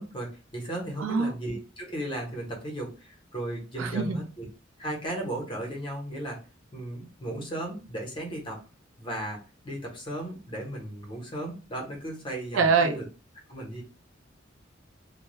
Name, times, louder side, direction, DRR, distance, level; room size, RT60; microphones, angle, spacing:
voice 1, 0.0-4.5 4.8-6.4 6.7-8.6 9.0-13.0 13.5-13.8, right 1 dB, 25° left, -1 dB, 0.8 m, -35 dB
voice 2, 1.0-1.3 3.8-4.2 12.5-13.0, right 5 dB, 80° right, 7 dB, 0.4 m, -24 dB
2.2 x 2.1 x 3.0 m, 0.35 s
head